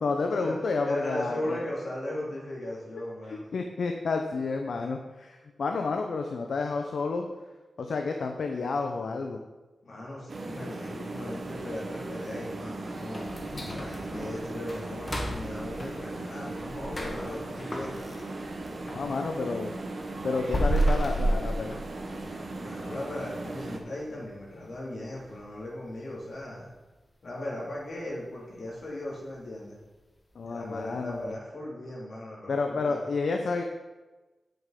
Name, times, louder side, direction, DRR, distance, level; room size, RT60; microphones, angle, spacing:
voice 1, 0.0-1.6 3.3-7.3 7.8-9.4 18.9-19.7 20.2-21.8 30.3-31.3 32.5-33.6, left 4 dB, 75° left, 4 dB, 0.8 m, -30 dB
voice 2, 0.8-3.5 9.8-13.2 13.7-18.0 22.3-26.7 27.2-29.8 30.5-33.0, left 1 dB, 60° left, -5 dB, 3.6 m, -37 dB
sound 1, 10.3-23.8, right 2 dB, 50° right, 1.5 m, -38 dB
sound 2, 13.1-19.1 19.5-22.3 22.7-22.8 23.2-23.4 23.9-24.2 24.5-24.6 25.2-25.3, right 1 dB, 25° left, 1.5 m, -32 dB
9.1 x 7.8 x 5.2 m, 1.2 s
wide cardioid pair, 145°, 0 cm